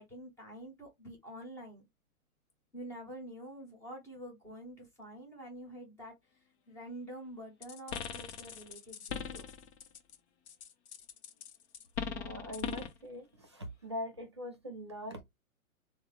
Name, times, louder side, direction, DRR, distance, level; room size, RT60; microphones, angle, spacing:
voice 1, 0.0-1.8 2.7-6.1 6.7-9.5, right 1 dB, 5° left, 0.7 m, -47 dB
sound 1, 7.6-10.2 10.5-13.0, left 7 dB, 50° left, 0.7 m, -40 dB
voice 2, 12.0-15.2, equal, 20° right, 0.3 m, -42 dB
3.5 x 2.0 x 3.0 m
hypercardioid pair, 135°, 43 cm